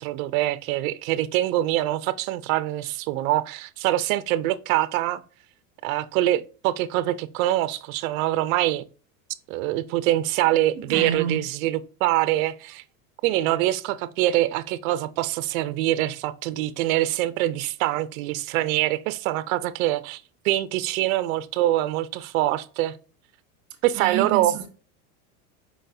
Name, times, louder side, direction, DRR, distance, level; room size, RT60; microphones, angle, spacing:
voice 1, 0.0-5.2 5.8-8.8 9.5-12.8 13.2-22.9 23.8-24.5, right 15 dB, 70° right, 0.6 m, -24 dB
voice 2, 10.7-11.4 23.9-24.7, right 8 dB, 45° right, 1.5 m, -28 dB
4.8 x 3.9 x 2.6 m
supercardioid pair, 140°, 43 cm